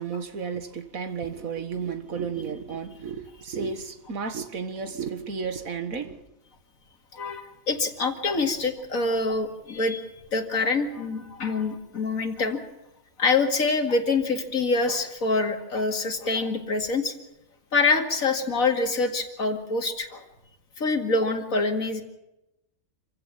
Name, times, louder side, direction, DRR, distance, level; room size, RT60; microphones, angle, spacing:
voice 1, 0.0-6.2, right 6 dB, 80° right, 2.0 m, -33 dB
voice 2, 7.1-10.1 10.3-12.6 13.2-17.1 17.7-20.3 20.8-22.0, left 3 dB, 80° left, 2.6 m, -25 dB
27.0 x 16.0 x 7.3 m
omnidirectional pair, 1.4 m